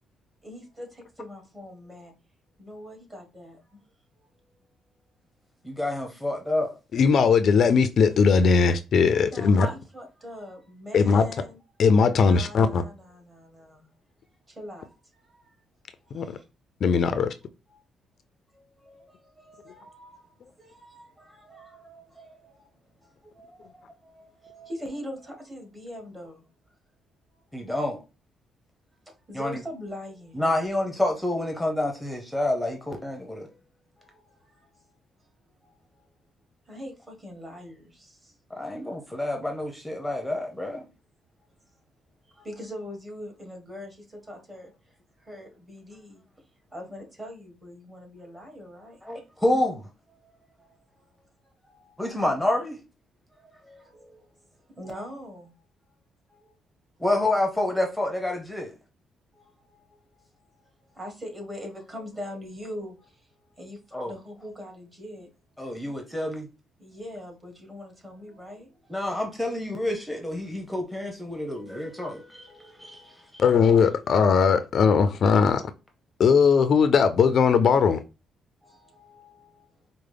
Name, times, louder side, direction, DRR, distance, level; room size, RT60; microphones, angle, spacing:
voice 1, 0.4-2.1 2.6-3.8 4.4-4.6 9.1-11.6 12.2-13.9 14.5-15.6 16.0-16.4 17.7-17.8 18.5-26.5 27.3-27.7 29.0-30.7 33.2-33.7 34.0-36.1 36.6-38.6 39.3-39.5 40.1-40.3 42.2-46.2 46.7-49.0 50.1-52.0 53.3-55.5 56.3-56.5 59.3-65.3 66.8-69.1 71.3-73.3 78.6-79.8, left 1 dB, 20° right, 1.6 m, -44 dB
voice 2, 5.6-6.7 9.6-9.7 27.5-28.0 29.3-29.6 30.3-33.5 38.6-40.9 49.0-49.9 52.0-52.8 57.0-58.7 63.9-64.1 65.6-66.5 68.9-72.5 72.8-73.4, left 1 dB, ahead, 0.8 m, -28 dB
voice 3, 6.9-9.7 10.9-11.3 11.8-12.8 16.1-16.4 16.8-17.3 73.4-75.6 76.2-78.0, left 5 dB, 60° left, 0.3 m, -19 dB
4.7 x 2.0 x 3.3 m
cardioid pair, 90°, 0 cm